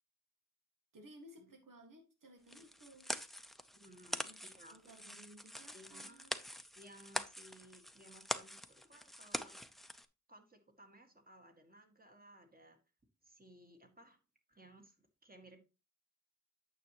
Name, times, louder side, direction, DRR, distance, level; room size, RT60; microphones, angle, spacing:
voice 1, 0.9-3.1 4.2-6.4, right 1 dB, 90° right, 4 dB, 1.8 m, -59 dB
sound 1, 2.5-10.1, equal, ahead, 0.6 m, -44 dB
voice 2, 3.7-4.8 5.7-6.3 6.8-9.6 10.3-12.8 13.2-14.2 14.5-15.6, right 1 dB, 30° right, 4 dB, 1.9 m, -60 dB
9.1 x 6.9 x 3.0 m, 0.29 s
wide cardioid pair, 80°, 31 cm